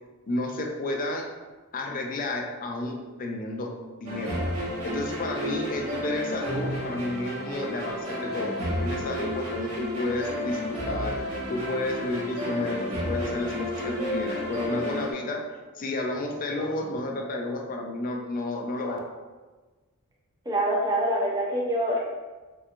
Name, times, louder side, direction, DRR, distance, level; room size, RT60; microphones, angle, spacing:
voice 1, 0.3-1.3 1.7-3.7 4.0-11.2 11.5-15.4 15.8-19.0, left 2 dB, 40° left, 1 dB, 0.4 m, -31 dB
sound 1, 4.1-15.1, left 1 dB, 80° right, 1.1 m, -32 dB
voice 2, 20.5-22.0, right 1 dB, 15° right, -4 dB, 0.5 m, -25 dB
3.4 x 2.9 x 2.4 m, 1.3 s
head